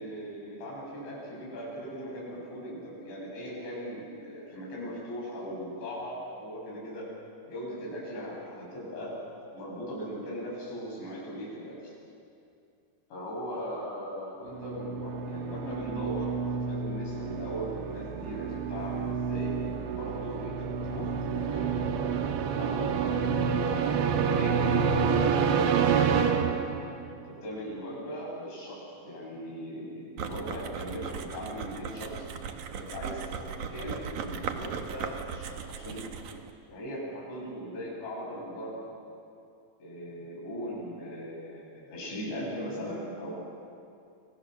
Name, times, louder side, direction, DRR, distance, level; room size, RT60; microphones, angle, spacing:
voice 1, 0.0-7.1 7.5-9.2 9.5-11.9 13.1-21.1 21.4-21.7 22.5-25.8 27.2-32.3 32.7-36.1 36.7-38.9 39.8-43.3, equal, 75° left, -4 dB, 10.5 m, -39 dB
sound 1, 14.5-27.1, right 6 dB, 80° right, 3.7 m, -28 dB
sound 2, 30.2-36.5, right 7 dB, 65° right, 2.0 m, -38 dB
29.0 x 26.5 x 6.8 m, 2.5 s
omnidirectional pair, 5.2 m